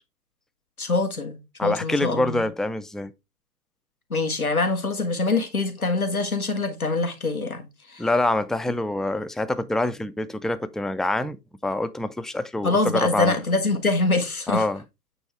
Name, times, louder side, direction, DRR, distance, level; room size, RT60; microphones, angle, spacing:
voice 1, 0.8-2.5 4.1-8.1 12.6-14.6, left 3 dB, 60° left, 1.8 m, -24 dB
voice 2, 1.6-3.1 8.0-11.4 11.6-13.4 14.5-14.8, left 2 dB, ahead, 0.3 m, -25 dB
8.7 x 3.1 x 4.6 m
figure-of-eight pair, 175°, 49 cm